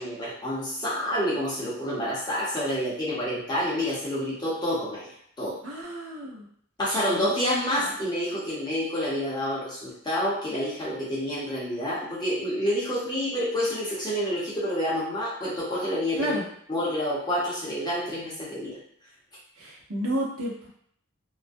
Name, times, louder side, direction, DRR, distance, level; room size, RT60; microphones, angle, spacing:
voice 1, 0.0-5.1 5.4-5.6 6.8-16.4 16.7-18.8, equal, 20° left, -8 dB, 0.7 m, -28 dB
voice 2, 5.6-6.5 6.9-7.3 7.8-7.9 16.2-16.4 19.6-20.7, right 1 dB, 70° right, -3 dB, 0.7 m, -31 dB
2.3 x 2.1 x 2.5 m, 0.64 s
head